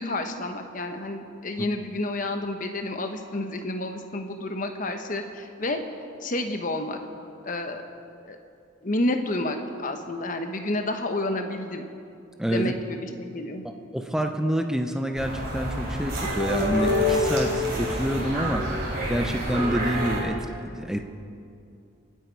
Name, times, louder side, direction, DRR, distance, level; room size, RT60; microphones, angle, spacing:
voice 1, 0.0-5.8 6.2-7.0 7.4-7.8 8.3-8.4 8.8-11.9 12.5-13.6, left 2 dB, 40° left, 5 dB, 1.1 m, -30 dB
voice 2, 12.4-12.7 13.9-18.7 19.1-20.4 20.7-21.0, equal, 5° right, 5 dB, 0.7 m, -27 dB
sound 1, 15.1-20.2, left 1 dB, 50° right, 3.9 m, -27 dB
27.0 x 9.3 x 4.7 m, 2.5 s
head